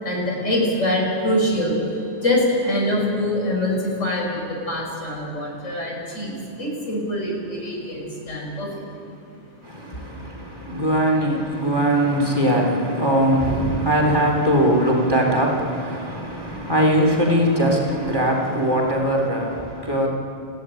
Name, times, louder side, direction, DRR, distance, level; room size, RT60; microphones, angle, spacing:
voice 1, 0.0-8.8 9.9-10.0, left 1 dB, 80° left, -1 dB, 5.7 m, -24 dB
voice 2, 9.6-20.1, equal, 20° right, 0 dB, 3.6 m, -21 dB
29.5 x 14.5 x 9.1 m, 2.6 s
omnidirectional pair, 1.3 m